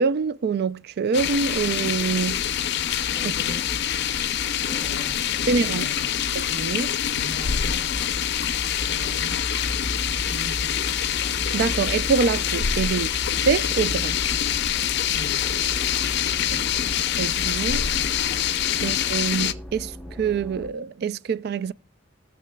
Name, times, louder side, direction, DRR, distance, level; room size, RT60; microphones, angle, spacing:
voice 1, 0.0-2.4 5.5-5.8 6.4-6.9 11.5-13.1 13.4-14.2 17.2-17.9 18.8-21.7, right 5 dB, 50° right, 0.3 m, -25 dB
sound 1, 1.1-19.5, left 9 dB, 60° left, 0.5 m, -25 dB
sound 2, 2.9-20.7, equal, 5° left, 0.7 m, -37 dB
voice 2, 3.1-4.0 4.5-6.2 7.1-8.2 8.7-10.9 15.1-17.0 17.9-18.0 18.7-18.9, equal, 35° right, 4.7 m, -42 dB
19.5 x 6.6 x 2.2 m
head